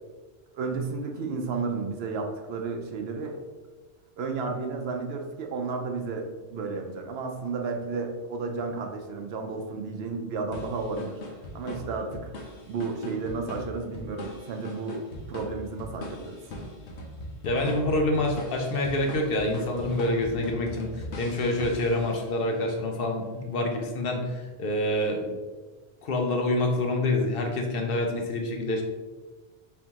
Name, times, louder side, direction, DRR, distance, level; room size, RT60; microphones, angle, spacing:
voice 1, 0.5-3.4 4.2-11.2 11.5-16.4, right 4 dB, 70° right, 4 dB, 0.8 m, -32 dB
sound 1, 10.5-22.5, left 1 dB, 85° left, 1.1 m, -40 dB
voice 2, 17.4-25.4 26.0-28.8, left 1 dB, 60° left, 2 dB, 0.8 m, -27 dB
4.2 x 3.6 x 2.9 m, 1.3 s
omnidirectional pair, 1.1 m